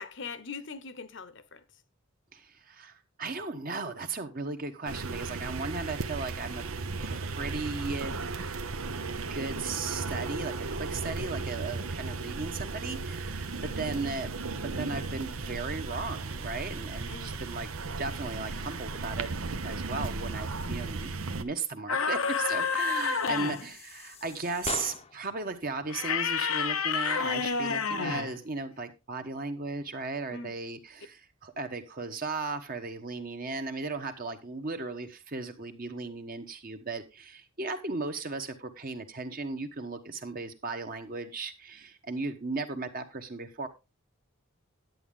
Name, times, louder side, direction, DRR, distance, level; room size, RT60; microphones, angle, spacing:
voice 1, 0.0-1.6 13.6-13.9 17.1-17.5 30.3-30.5, left 5 dB, 60° left, 1.0 m, -42 dB
voice 2, 2.3-6.6 7.0-8.1 9.3-13.5 13.8-19.3 19.6-21.1 21.4-43.7, right 3 dB, 45° right, 1.2 m, -36 dB
sound 1, 4.9-21.4, right 3 dB, 85° right, 0.9 m, -35 dB
sound 2, 21.9-23.7 25.9-28.4, left 5 dB, 85° left, 0.9 m, -29 dB
sound 3, 22.2-25.3, left 4 dB, 30° left, 0.7 m, -42 dB
10.5 x 8.5 x 3.8 m
head